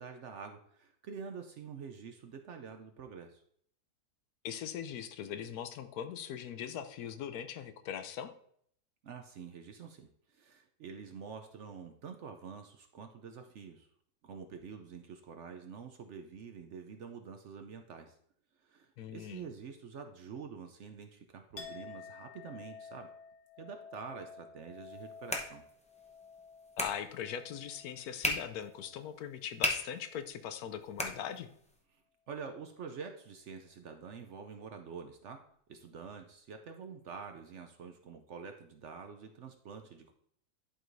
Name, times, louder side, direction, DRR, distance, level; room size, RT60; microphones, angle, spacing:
voice 1, 0.0-3.4 9.0-13.9 14.2-18.1 18.6-23.1 23.6-25.6 31.9-32.0 32.3-35.4 35.7-40.1, right 6 dB, 65° right, 6 dB, 0.8 m, -47 dB
voice 2, 4.4-8.3 19.0-19.5 26.8-31.5, left 9 dB, 80° left, 10 dB, 1.1 m, -40 dB
Chink clink, 21.6-29.2 29.6-30.3, left 5 dB, 50° left, 1.0 m, -52 dB
sound 1, 24.8-31.8, left 1 dB, 10° left, 0.5 m, -40 dB
11.5 x 4.7 x 2.6 m, 0.66 s
omnidirectional pair, 1.6 m